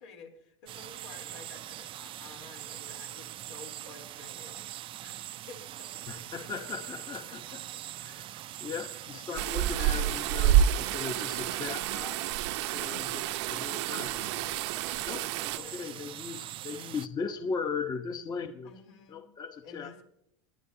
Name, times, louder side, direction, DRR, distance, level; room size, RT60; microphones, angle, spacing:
voice 1, 0.0-6.6 7.3-7.8 8.9-9.4 10.9-11.2 13.0-13.8 14.2-15.9 18.6-19.3 19.6-20.0, left 5 dB, 75° left, 3 dB, 3.6 m, -52 dB
sound 1, 0.7-17.1, right 13 dB, 35° right, 0.4 m, -42 dB
voice 2, 6.1-7.6 8.0-12.2 12.7-14.3 15.0-15.2 15.5-18.7 19.1-20.0, left 5 dB, 25° left, 6 dB, 1.0 m, -38 dB
sound 2, 9.4-15.6, right 10 dB, 70° right, 0.7 m, -29 dB
24.5 x 9.9 x 2.8 m, 0.76 s
supercardioid pair, 115°, 15 cm